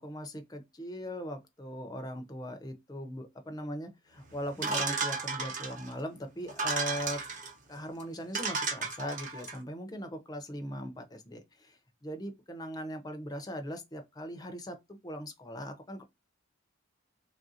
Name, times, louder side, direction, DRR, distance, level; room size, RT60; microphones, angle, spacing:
voice 1, 0.0-7.2 7.7-16.0, equal, 20° left, 0.5 m, -40 dB
sound 1, 4.6-5.9 6.5-7.5 8.0-8.1 8.3-9.6, right 4 dB, 35° right, 0.8 m, -33 dB
3.3 x 2.4 x 2.6 m
head